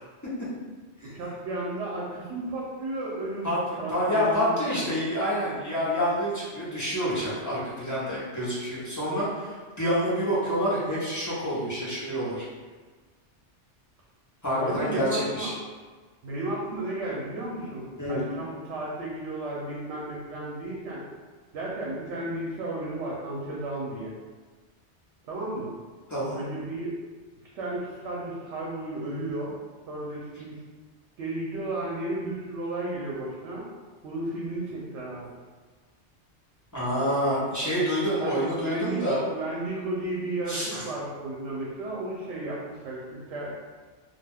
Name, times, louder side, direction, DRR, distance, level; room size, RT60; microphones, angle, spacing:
voice 1, 1.0-3.5 3.8-4.9 14.6-15.5 16.2-21.0 21.5-24.1 25.2-25.7 26.4-26.9 27.5-29.6 29.9-30.6 31.2-33.7 34.0-35.3 37.4-37.5 38.2-43.5, right 2 dB, 75° right, -4 dB, 0.9 m, -33 dB
voice 2, 3.9-12.4 14.4-15.5 18.0-18.2 26.1-26.4 36.7-39.2 40.5-40.8, equal, 20° left, -9 dB, 0.6 m, -27 dB
2.3 x 2.2 x 3.3 m, 1.4 s
omnidirectional pair, 1.2 m